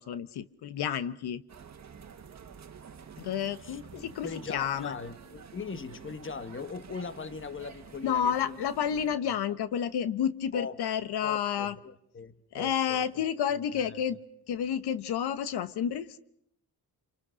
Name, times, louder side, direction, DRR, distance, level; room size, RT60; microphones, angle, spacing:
voice 1, 0.0-1.4 3.2-4.9 8.0-11.7 12.5-14.2 14.5-16.2, left 8 dB, 80° left, 1.1 m, -30 dB
sound 1, 1.5-9.2, right 6 dB, 45° right, 1.6 m, -49 dB
voice 2, 3.6-8.6 9.2-9.4 10.5-10.8 11.2-13.2 13.7-14.0, left 5 dB, 30° left, 1.4 m, -40 dB
29.5 x 27.5 x 6.3 m
cardioid pair, 110°, 39 cm